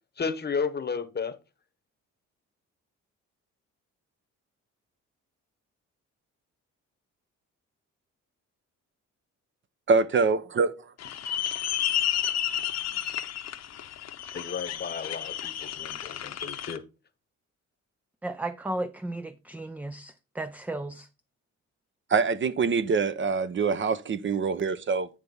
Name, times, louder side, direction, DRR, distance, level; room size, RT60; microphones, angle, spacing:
voice 1, 0.2-1.4 14.3-16.8, left 5 dB, 35° left, 1.0 m, -33 dB
voice 2, 9.9-10.7 22.1-25.1, right 5 dB, 40° right, 0.7 m, -24 dB
sound 1, 11.0-16.8, left 11 dB, 60° left, 0.9 m, -31 dB
voice 3, 18.2-21.1, right 2 dB, 5° right, 0.4 m, -34 dB
9.1 x 3.4 x 5.4 m
cardioid pair, 90°, 30 cm